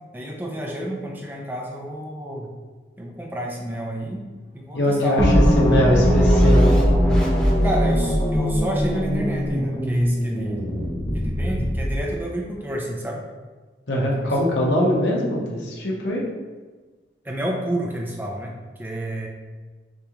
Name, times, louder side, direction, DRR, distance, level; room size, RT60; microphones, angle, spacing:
voice 1, 0.1-2.5 3.0-4.2 4.5-5.6 7.6-10.6 11.1-13.2 14.0-14.2 17.2-18.5 18.8-19.3, right 1 dB, 10° right, 0 dB, 0.5 m, -30 dB
sound 1, 4.6-8.2, equal, 5° left, 1.0 m, -35 dB
voice 2, 4.7-6.8 13.9-16.2, equal, 85° left, -3 dB, 1.0 m, -22 dB
sound 2, 5.2-12.1, equal, 25° left, 0.8 m, -20 dB
6.5 x 2.5 x 3.0 m, 1.3 s
head